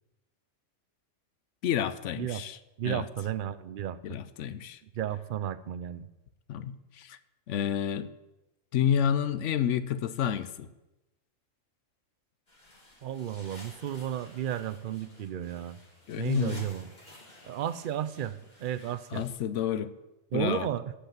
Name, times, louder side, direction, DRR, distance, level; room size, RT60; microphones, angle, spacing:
voice 1, 1.6-2.6 2.8-3.0 4.0-4.8 6.5-7.2 7.5-8.1 8.7-10.7 16.1-16.6 19.1-19.9 20.3-20.7, left 9 dB, 75° left, 13 dB, 0.9 m, -29 dB
voice 2, 2.8-4.0 4.8-6.1 13.0-15.8 16.2-16.9 17.5-19.2 20.3-20.9, right 10 dB, 60° right, 14 dB, 0.6 m, -33 dB
sound 1, 12.5-19.3, left 1 dB, 35° left, 2.5 m, -53 dB
8.5 x 8.1 x 7.3 m, 0.99 s
omnidirectional pair, 1.3 m